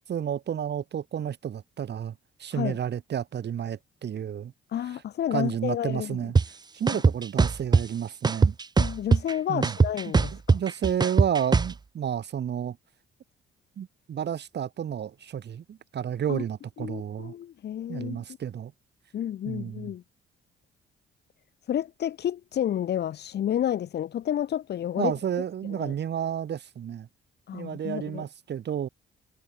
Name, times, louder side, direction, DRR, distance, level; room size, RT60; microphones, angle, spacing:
voice 1, 0.1-4.5 5.3-6.4 6.7-8.6 9.5-9.8 10.5-12.8 13.8-17.3 17.9-18.7 19.5-19.9 25.0-27.1 27.5-28.9, right 9 dB, 60° right, 4.0 m, -31 dB
voice 2, 4.7-6.2 6.9-7.0 8.8-10.6 16.3-16.4 16.8-18.2 19.1-20.0 21.7-25.1 25.7-25.9 27.5-28.2, left 10 dB, 60° left, 0.9 m, -30 dB
sound 1, 6.4-6.5 6.9-7.8 8.2-9.3 9.6-11.7, right 4 dB, 20° right, 0.6 m, -20 dB
cardioid pair, 90°, 20 cm